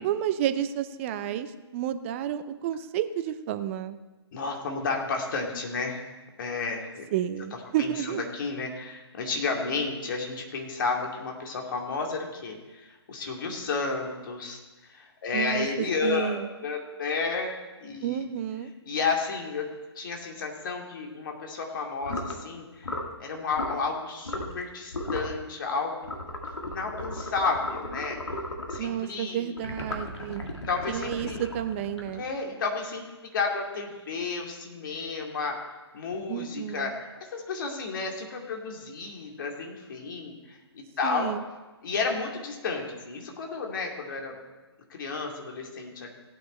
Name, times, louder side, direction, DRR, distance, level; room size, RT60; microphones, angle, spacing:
voice 1, 0.0-4.0 7.1-8.2 15.3-16.5 18.0-18.7 28.8-30.5 30.9-32.2 36.3-36.9 41.0-41.4, right 10 dB, 30° right, 11 dB, 0.7 m, -31 dB
voice 2, 4.3-6.0 6.4-7.1 7.8-14.6 14.9-18.3 18.8-19.7 20.0-22.9 23.2-26.1 26.7-28.2 28.7-29.5 30.7-31.5 32.1-33.1 33.3-35.6 35.9-41.3 41.8-44.4 44.9-46.1, left 4 dB, 50° left, 1 dB, 2.5 m, -32 dB
sound 1, 22.0-22.4 22.8-23.1 23.5-23.8 24.2-24.6 24.9-25.3 26.0-28.9 29.6-32.4, left 1 dB, 80° left, 2.1 m, -35 dB
16.0 x 9.4 x 4.4 m, 1.2 s
figure-of-eight pair, 135°, 14 cm